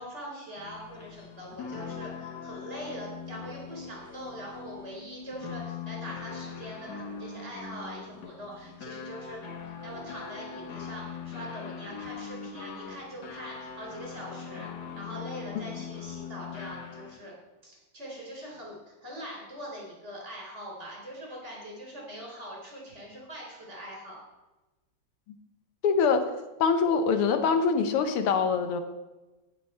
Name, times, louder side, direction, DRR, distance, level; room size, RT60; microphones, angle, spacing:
voice 1, 0.0-14.7 14.9-17.3 17.6-24.2, right 1 dB, 30° right, -2 dB, 4.0 m, -42 dB
sound 1, 0.6-17.3, left 6 dB, 55° left, 1.6 m, -41 dB
voice 2, 25.8-26.2 26.6-28.8, left 5 dB, 85° left, 8 dB, 1.9 m, -24 dB
17.0 x 6.1 x 4.4 m, 1.1 s
omnidirectional pair, 2.4 m